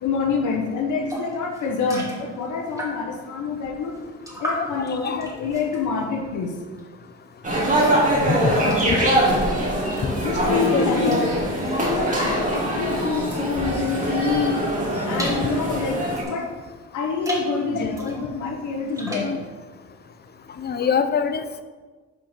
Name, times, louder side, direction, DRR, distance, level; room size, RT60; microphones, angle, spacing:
voice 1, 0.0-4.0 4.4-6.5 10.2-11.2 11.7-14.6 15.1-16.0 16.2-16.5 16.9-19.4, left 5 dB, 75° left, 2 dB, 1.1 m, -26 dB
sound 1, 1.1-3.2 3.6-7.1 7.4-13.7 14.2-16.5 17.1-17.5 17.9-19.4, equal, 10° right, 2.5 m, -38 dB
sound 2, 7.4-16.2, right 1 dB, 25° right, 2.4 m, -23 dB
voice 2, 8.3-9.1 10.0-10.2 10.7-10.9 18.0-18.2 19.2-19.4 20.6-21.6, left 6 dB, 35° left, 11 dB, 0.6 m, -25 dB
6.6 x 5.0 x 5.7 m, 1.4 s
cardioid pair, 90°, 30 cm